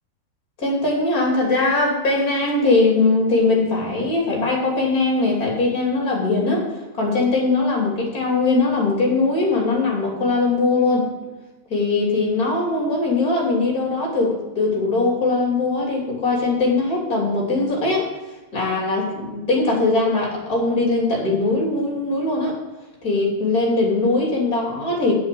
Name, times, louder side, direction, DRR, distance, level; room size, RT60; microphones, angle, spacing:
voice 1, 0.6-6.7 7.0-11.0 11.7-18.1 18.5-22.6 23.0-25.1, left 3 dB, 30° left, -1 dB, 3.3 m, -20 dB
7.7 x 7.3 x 8.4 m, 1.1 s
omnidirectional pair, 3.3 m